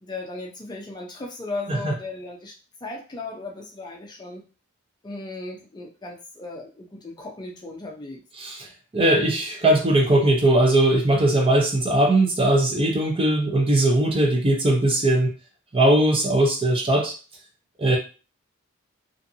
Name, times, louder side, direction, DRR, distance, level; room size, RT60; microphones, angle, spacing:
voice 1, 0.0-2.5 2.8-4.4 5.0-8.2, left 2 dB, 20° left, 0 dB, 0.5 m, -36 dB
voice 2, 8.9-15.3 15.7-17.1 17.8-18.0, right 1 dB, 25° right, 1 dB, 0.6 m, -19 dB
2.5 x 2.5 x 2.7 m, 0.33 s
head